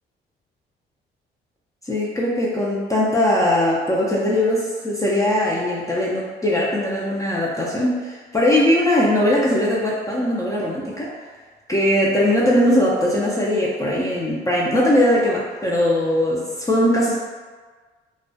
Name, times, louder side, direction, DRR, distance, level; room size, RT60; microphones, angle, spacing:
voice 1, 1.9-11.1 11.7-17.2, left 1 dB, 15° left, -5 dB, 0.4 m, -20 dB
2.3 x 2.1 x 2.6 m, 1.4 s
cardioid pair, 90°, 20 cm